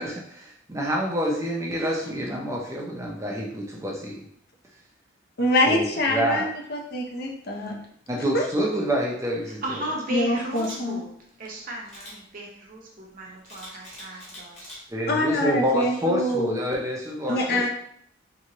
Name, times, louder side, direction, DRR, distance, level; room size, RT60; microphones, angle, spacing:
voice 1, 0.0-4.3 5.7-6.4 8.1-9.6 14.9-17.7, equal, 15° right, -1 dB, 0.5 m, -27 dB
voice 2, 5.4-7.9 8.3-8.4 10.1-11.0 15.1-16.6 17.3-17.7, left 1 dB, 50° left, 1 dB, 0.6 m, -25 dB
voice 3, 9.4-11.1 11.4-14.8 17.3-17.7, right 1 dB, 45° right, -2 dB, 0.8 m, -35 dB
Camera, 10.5-10.8 11.9-12.2 13.5-14.8 15.3-15.5, left 1 dB, 30° left, 1.2 m, -43 dB
3.4 x 3.0 x 2.9 m, 0.65 s
head